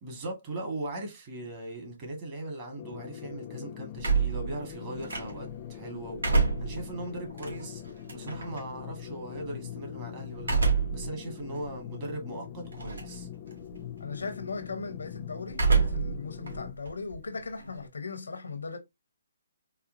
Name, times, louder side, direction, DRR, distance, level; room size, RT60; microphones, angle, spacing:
voice 1, 0.0-7.8 8.1-10.6 10.9-13.3, right 2 dB, 30° right, 1.7 m, -39 dB
sound 1, 2.8-16.7, left 10 dB, 35° left, 0.5 m, -42 dB
sound 2, 4.0-5.6 6.0-8.6 10.4-11.1 11.6-11.7 12.7-13.2 13.5-13.9 15.5-16.2 16.5-17.9, right 4 dB, 80° right, 1.6 m, -27 dB
voice 2, 14.0-18.8, left 4 dB, 85° left, 0.9 m, -38 dB
4.2 x 2.3 x 2.6 m
hypercardioid pair, 145°, 0 cm